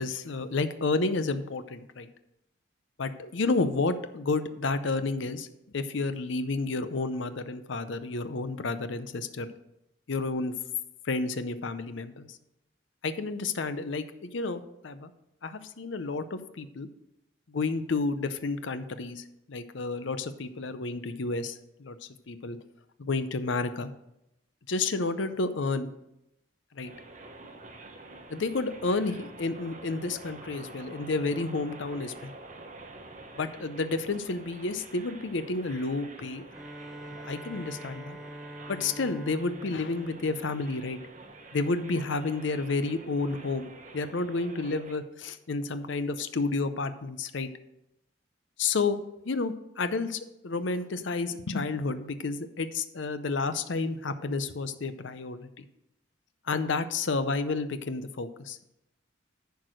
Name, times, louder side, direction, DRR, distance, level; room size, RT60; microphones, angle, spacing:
voice 1, 0.0-2.1 3.0-5.5 5.7-9.5 10.1-10.5 11.0-12.4 13.0-15.1 15.4-16.9 17.5-22.0 22.3-22.6 23.0-23.9 24.7-25.9 26.7-26.9 28.3-32.3 33.4-36.5 37.1-38.2 38.7-41.0 41.5-47.5 48.6-55.7 56.5-58.6, left 3 dB, 70° left, 11 dB, 0.6 m, -31 dB
sound 1, 26.8-44.9, right 2 dB, 35° right, 1.0 m, -48 dB
Bowed string instrument, 36.5-41.2, right 1 dB, ahead, 0.6 m, -45 dB
10.5 x 4.7 x 6.2 m, 0.86 s
head